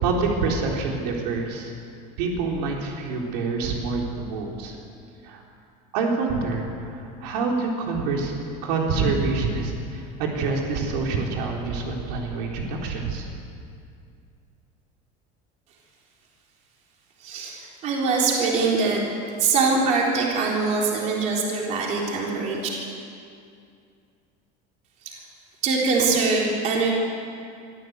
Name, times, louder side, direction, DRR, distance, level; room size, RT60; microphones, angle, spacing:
voice 1, 0.0-1.7 2.2-4.8 5.2-5.4 5.9-8.3 8.6-13.3, right 4 dB, 90° right, 0 dB, 3.9 m, -26 dB
voice 2, 17.2-19.0 19.4-22.6 25.0-25.2 25.6-26.9, right 4 dB, 35° right, -2 dB, 3.7 m, -23 dB
24.0 x 14.5 x 8.1 m, 2.4 s
cardioid pair, 180°, 20 cm